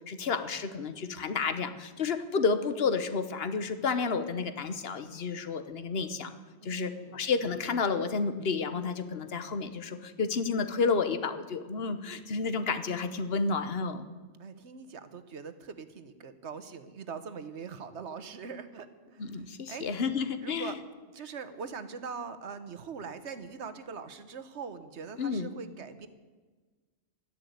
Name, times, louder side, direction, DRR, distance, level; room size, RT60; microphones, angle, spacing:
voice 1, 0.1-6.3 6.6-14.0 19.2-20.8 25.2-25.5, left 5 dB, 65° left, 10 dB, 1.3 m, -31 dB
voice 2, 6.6-7.2 14.4-19.4 19.7-19.8 20.4-20.8 21.1-26.1, right 5 dB, 85° right, 11 dB, 1.4 m, -42 dB
12.5 x 10.5 x 9.4 m, 1.3 s
omnidirectional pair, 1.1 m